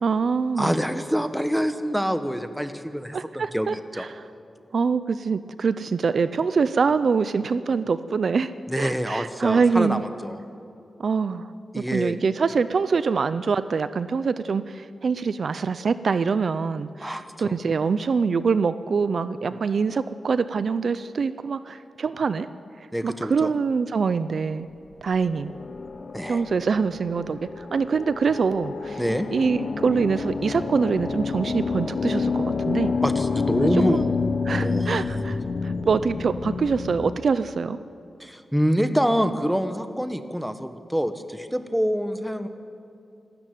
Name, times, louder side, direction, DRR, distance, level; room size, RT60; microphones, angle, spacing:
voice 1, 0.0-0.7 3.1-4.2 4.7-8.5 8.8-10.0 11.0-22.5 23.0-24.7 25.0-25.5 26.3-29.0 29.3-32.9 33.9-34.1 34.5-37.8, right 5 dB, 55° right, 13 dB, 0.5 m, -24 dB
voice 2, 0.6-3.7 3.9-4.1 8.7-10.4 11.7-12.2 17.0-17.5 22.9-23.5 26.1-26.4 29.0-29.3 33.0-34.1 34.6-34.9 38.2-42.5, equal, ahead, 9 dB, 1.0 m, -26 dB
sound 1, 25.3-37.2, left 4 dB, 50° left, 0.9 m, -28 dB
26.0 x 13.0 x 9.3 m, 2.6 s
wide cardioid pair, 170°, 0 cm